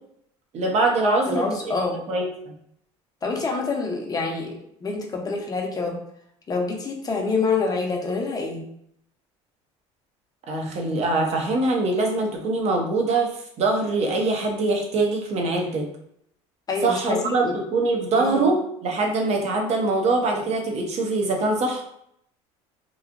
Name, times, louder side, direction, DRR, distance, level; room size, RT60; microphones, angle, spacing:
voice 1, 0.5-1.5 2.1-2.3 10.5-13.3 13.6-15.9 16.8-21.8, right 3 dB, 50° right, 1 dB, 0.9 m, -23 dB
voice 2, 1.0-2.0 3.2-4.5 4.8-6.0 6.5-8.6 16.7-17.5 18.2-18.4, left 3 dB, 25° left, 1 dB, 0.8 m, -26 dB
3.1 x 2.4 x 2.5 m, 0.72 s
supercardioid pair, 90°, 15 cm